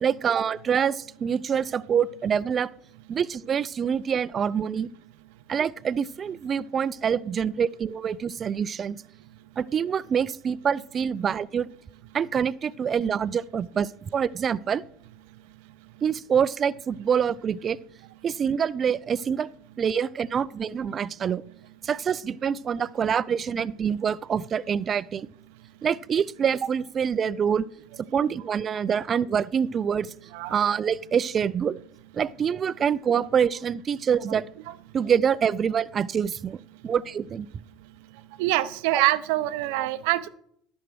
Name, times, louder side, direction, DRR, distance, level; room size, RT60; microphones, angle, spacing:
voice 1, 0.0-2.7 3.1-4.9 5.5-9.0 9.6-11.7 12.1-14.8 16.0-17.8 18.2-19.5 19.8-21.4 21.8-25.3 25.8-27.7 28.1-30.1 30.5-31.8 32.1-34.4 34.9-37.5 38.9-39.0 39.8-39.9, right 7 dB, 40° right, 18 dB, 0.4 m, -26 dB
voice 2, 38.4-40.3, right 16 dB, 75° right, 14 dB, 0.6 m, -25 dB
11.0 x 6.3 x 6.2 m, 0.66 s
hypercardioid pair, 85°, 0 cm